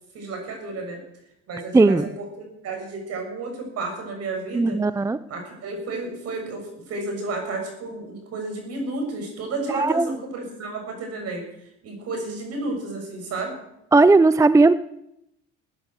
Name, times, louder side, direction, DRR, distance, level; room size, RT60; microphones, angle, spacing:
voice 1, 0.1-1.0 1.5-4.8 5.3-11.4 11.8-13.5, right 3 dB, 55° right, 3 dB, 6.9 m, -32 dB
voice 2, 1.7-2.0 4.5-5.2 9.7-10.1 13.9-14.7, right 3 dB, 10° right, 15 dB, 0.5 m, -16 dB
15.5 x 9.7 x 7.5 m, 0.80 s
supercardioid pair, 90°, 30 cm